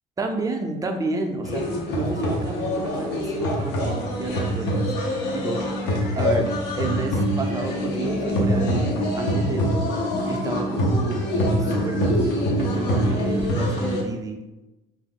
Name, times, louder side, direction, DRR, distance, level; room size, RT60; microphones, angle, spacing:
voice 1, 0.2-6.5 6.8-11.2 11.6-14.4, right 2 dB, 20° right, 4 dB, 0.3 m, -31 dB
sound 1, 1.4-14.0, equal, 85° left, 0.6 m, -24 dB
2.4 x 2.0 x 3.5 m, 1.0 s
cardioid pair, 110°, 17 cm